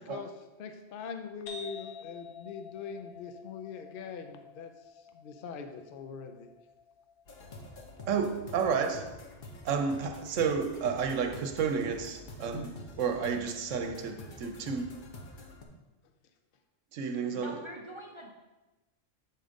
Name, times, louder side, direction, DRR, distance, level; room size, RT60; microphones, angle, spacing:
voice 1, 0.6-6.5, left 6 dB, 60° left, 0.6 m, -42 dB
sound 1, 1.5-8.9, left 4 dB, 85° left, 1.3 m, -50 dB
sound 2, 7.3-15.7, left 1 dB, 45° left, 1.0 m, -48 dB
voice 2, 8.1-9.2 9.6-14.9 16.9-17.6, right 6 dB, 75° right, 1.1 m, -31 dB
voice 3, 17.3-18.3, right 1 dB, 35° right, 0.5 m, -44 dB
7.5 x 3.7 x 5.1 m
omnidirectional pair, 1.3 m